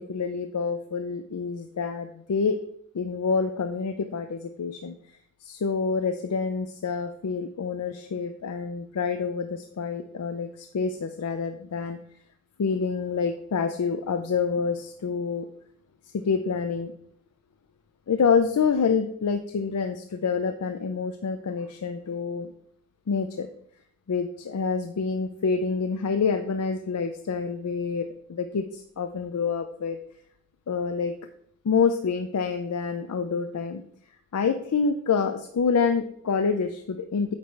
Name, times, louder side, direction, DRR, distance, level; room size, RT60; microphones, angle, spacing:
voice 1, 0.0-2.6 2.9-4.9 5.4-12.0 12.6-15.5 16.1-16.9 18.1-22.5 23.1-23.5 24.1-30.0 30.7-31.1 31.6-33.8 34.3-37.3, left 5 dB, 85° left, 7 dB, 0.4 m, -27 dB
8.1 x 3.2 x 4.5 m, 0.69 s
head